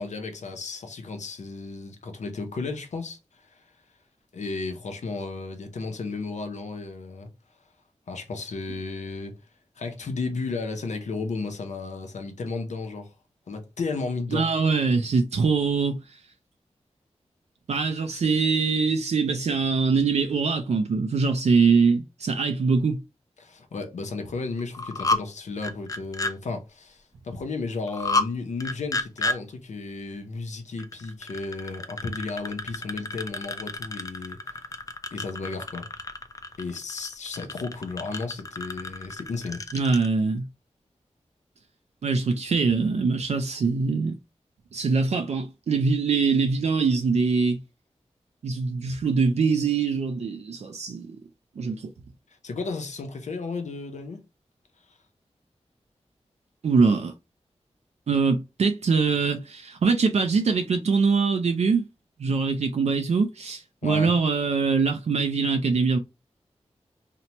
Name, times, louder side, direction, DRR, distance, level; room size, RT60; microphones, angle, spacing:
voice 1, 0.0-3.6 4.3-7.3 8.1-9.3 9.8-13.1 13.5-14.5 23.4-34.6 35.1-35.9 36.6-39.6 52.4-54.2 54.9-55.0 63.8-64.1, left 3 dB, 85° left, 0.6 m, -33 dB
voice 2, 14.3-16.0 17.7-23.0 39.7-40.5 42.0-44.1 44.7-47.6 48.4-51.2 51.6-51.9 56.6-57.1 58.1-61.9 62.2-66.0, right 4 dB, 70° right, 0.4 m, -23 dB
sound 1, 24.6-25.2 25.6-26.3 27.9-28.3 28.6-29.4 30.8-40.1, left 2 dB, 30° left, 0.3 m, -30 dB
2.8 x 2.1 x 2.8 m
wide cardioid pair, 65°, 12 cm